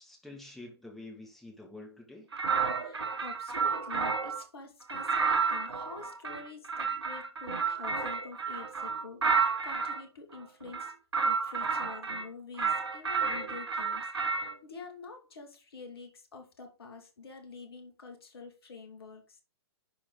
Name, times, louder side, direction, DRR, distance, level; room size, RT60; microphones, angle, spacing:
voice 1, 0.0-2.3, left 2 dB, ahead, -1 dB, 1.8 m, -47 dB
sound 1, 2.3-4.4 4.9-10.0 10.7-12.3 12.6-14.5, right 5 dB, 70° right, 0.9 m, -31 dB
voice 2, 2.8-10.9 11.2-14.1 14.6-19.4, left 4 dB, 60° left, 4 dB, 2.4 m, -47 dB
11.0 x 4.4 x 3.9 m, 0.33 s
figure-of-eight pair, 115°, 14 cm